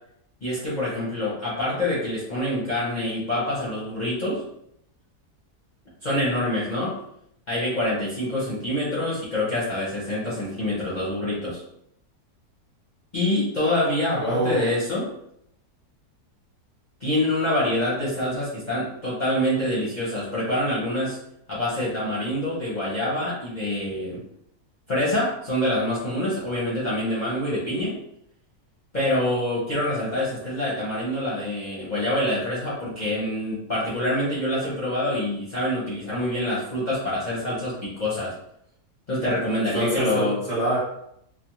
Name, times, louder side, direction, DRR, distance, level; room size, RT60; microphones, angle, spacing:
voice 1, 0.4-4.4 6.0-6.9 7.5-11.6 13.1-15.1 17.0-21.2 21.5-24.2 24.9-28.0 28.9-38.3 39.1-40.4, left 1 dB, 40° left, -8 dB, 0.7 m, -26 dB
voice 2, 14.1-14.7 39.7-40.8, right 1 dB, 35° right, -8 dB, 0.9 m, -25 dB
3.3 x 2.0 x 2.9 m, 0.75 s
omnidirectional pair, 1.7 m